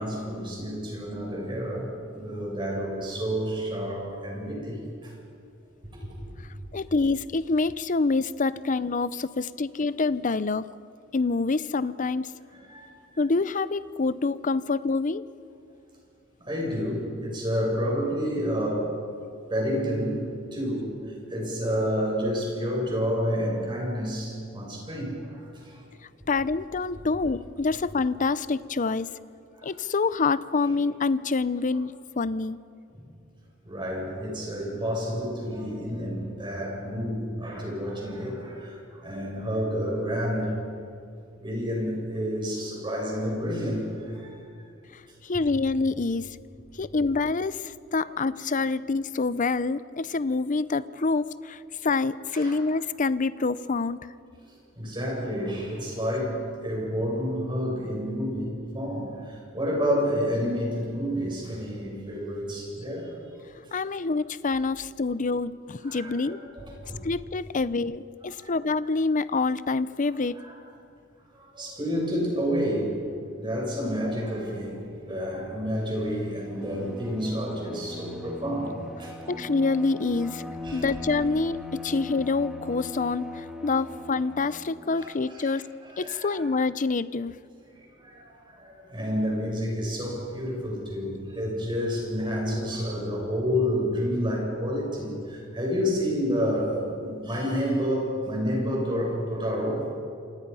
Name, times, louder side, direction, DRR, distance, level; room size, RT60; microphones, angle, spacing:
voice 1, 0.0-5.1 12.5-12.9 16.4-19.0 19.5-20.2 20.5-20.9 21.3-25.8 29.6-29.7 33.7-40.5 41.4-44.3 52.3-52.6 54.8-63.1 65.8-67.0 68.3-68.5 70.1-70.5 71.5-73.0 73.4-78.7 79.0-79.4 80.6-80.9 85.0-86.4 88.0-88.2 88.6-99.8, equal, 25° right, -2 dB, 7.4 m, -29 dB
voice 2, 6.7-10.7 11.1-12.3 13.2-15.3 26.3-29.1 29.6-32.6 45.2-46.3 46.8-54.0 63.7-66.4 67.0-70.4 79.3-80.4 80.7-85.7 86.0-87.3, left 3 dB, 40° left, 16 dB, 0.6 m, -26 dB
Bowed string instrument, 76.5-85.0, left 2 dB, 5° right, 1.9 m, -39 dB
28.0 x 26.5 x 5.6 m, 2.5 s
head